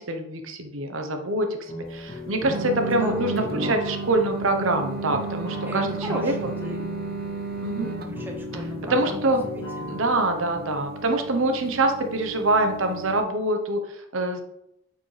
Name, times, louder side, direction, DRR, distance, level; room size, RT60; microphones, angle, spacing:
voice 1, 0.0-6.5 7.6-7.9 8.9-9.4 9.9-14.4, right 2 dB, 80° right, 5 dB, 1.0 m, -25 dB
sound 1, 1.7-10.1, left 2 dB, 20° left, 2.2 m, -37 dB
voice 2, 2.4-3.5 5.7-6.9 8.1-9.3 9.8-10.0, left 1 dB, 10° right, 1 dB, 1.0 m, -37 dB
sound 2, 2.4-13.2, right 4 dB, 45° right, 0.7 m, -34 dB
8.9 x 5.1 x 3.4 m, 0.80 s
head